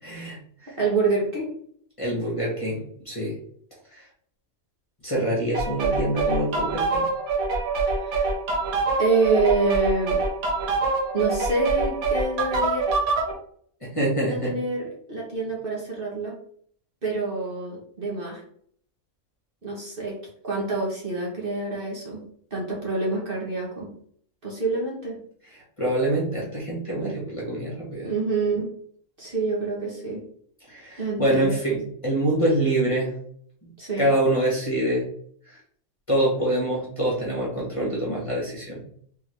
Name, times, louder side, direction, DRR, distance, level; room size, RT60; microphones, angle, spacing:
voice 1, 0.0-0.8 2.0-3.4 3.9-4.0 5.0-7.0 13.8-14.5 25.5-28.1 30.7-33.1 33.6-33.7 34.0-35.0 35.5-35.6 36.1-38.8, right 1 dB, 25° left, -5 dB, 1.3 m, -25 dB
voice 2, 0.8-1.5 8.0-8.3 9.0-10.2 11.1-12.8 14.3-16.3 17.0-18.4 19.6-20.2 20.4-22.2 22.5-23.9 24.4-25.2 28.0-28.7 29.2-30.2 31.0-31.5 33.8-34.1, right 3 dB, 40° right, -4 dB, 1.3 m, -26 dB
sound 1, 5.5-13.3, right 3 dB, 80° right, 1.4 m, -25 dB
3.8 x 3.4 x 3.3 m, 0.62 s
omnidirectional pair, 1.5 m